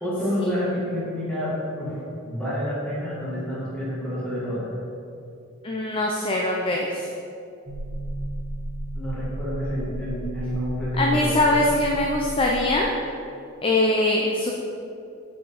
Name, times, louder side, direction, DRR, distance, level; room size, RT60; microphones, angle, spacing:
voice 1, 0.0-4.7 8.9-11.8, equal, 5° left, -9 dB, 1.7 m, -28 dB
voice 2, 5.6-7.1 11.0-12.9 13.6-14.5, left 1 dB, 25° left, -1 dB, 0.5 m, -22 dB
sound 1, 7.7-12.8, right 1 dB, 30° right, 0.9 m, -34 dB
5.9 x 4.9 x 5.2 m, 2.6 s
head